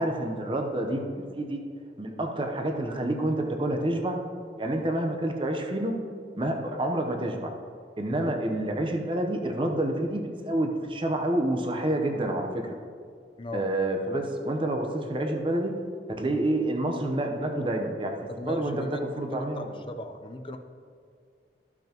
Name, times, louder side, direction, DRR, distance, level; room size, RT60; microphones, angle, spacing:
voice 1, 0.0-1.6 2.0-4.2 4.6-6.0 6.4-7.5 8.0-12.6 13.5-15.7 16.2-18.2 18.5-18.8 19.2-19.7, right 1 dB, 30° right, 3 dB, 0.8 m, -28 dB
voice 2, 13.4-13.7 18.3-19.0 19.4-20.6, left 1 dB, 30° left, 7 dB, 0.6 m, -38 dB
14.0 x 6.0 x 2.9 m, 2.2 s
head